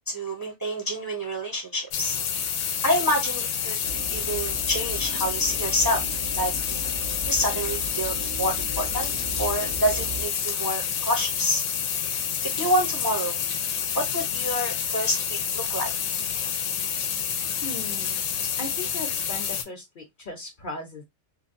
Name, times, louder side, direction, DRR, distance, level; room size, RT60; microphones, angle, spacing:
voice 1, 0.1-2.2 2.8-3.8 4.1-6.0 6.3-6.5 7.2-9.1 9.4-11.6 12.4-13.4 13.9-15.9, equal, 25° right, 0.6 m, -27 dB
sound 1, 1.9-19.6, left 8 dB, 80° left, 0.9 m, -28 dB
sound 2, 3.8-10.3, right 1 dB, 70° right, 1.1 m, -37 dB
voice 2, 17.6-18.3 18.6-21.0, left 2 dB, 50° left, 0.8 m, -37 dB
3.1 x 2.2 x 2.5 m
omnidirectional pair, 1.2 m